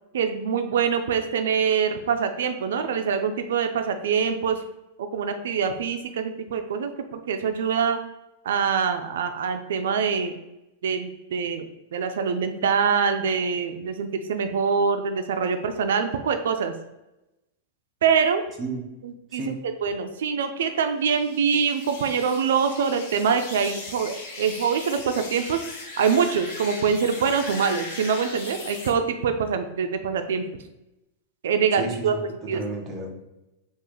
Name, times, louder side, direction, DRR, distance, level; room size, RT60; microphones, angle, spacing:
voice 1, 0.1-4.6 5.1-8.0 8.4-10.3 10.8-16.7 18.0-18.4 19.0-25.6 26.0-30.4 31.4-32.1 32.5-32.6, right 6 dB, 85° right, 7 dB, 0.4 m, -24 dB
sound 1, 21.1-28.9, left 2 dB, 50° left, 0.8 m, -38 dB
voice 2, 31.8-33.1, right 3 dB, 20° right, 0 dB, 0.7 m, -32 dB
3.7 x 2.4 x 3.1 m, 0.95 s
supercardioid pair, 160°, 0 cm